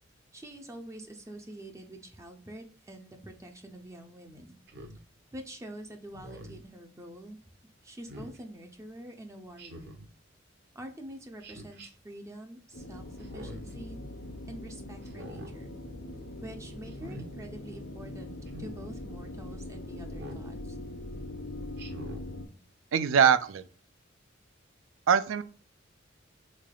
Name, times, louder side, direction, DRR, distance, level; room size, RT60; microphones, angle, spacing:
voice 1, 0.3-4.6 5.3-7.4 7.8-9.9 10.7-13.1 13.3-14.0 14.5-15.7 16.4-20.8, right 1 dB, 15° right, 0.4 m, -46 dB
Speech synthesizer, 4.7-5.0 6.1-6.6 8.1-8.4 9.6-10.1 11.4-11.9 13.2-13.7 15.0-15.5 16.9-17.3 18.5-18.8 20.1-20.5 21.8-22.3, right 1 dB, 55° right, 0.8 m, -45 dB
sound 1, 12.7-22.5, left 1 dB, 55° left, 0.6 m, -42 dB
voice 2, 22.9-23.7 25.1-25.4, right 7 dB, 80° right, 0.4 m, -22 dB
3.9 x 3.2 x 2.2 m
head